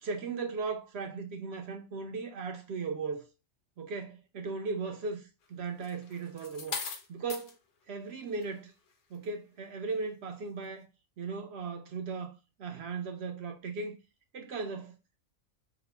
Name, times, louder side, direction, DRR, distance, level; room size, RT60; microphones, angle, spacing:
voice 1, 0.0-3.3 3.8-6.8 7.1-7.5 7.9-8.7 9.1-10.9 11.2-12.3 12.6-14.0 14.3-15.0, right 4 dB, 65° right, 0.7 m, -37 dB
sound 1, 5.8-7.5 8.3-8.5, left 5 dB, 65° left, 1.0 m, -39 dB
3.6 x 2.1 x 3.2 m
omnidirectional pair, 1.3 m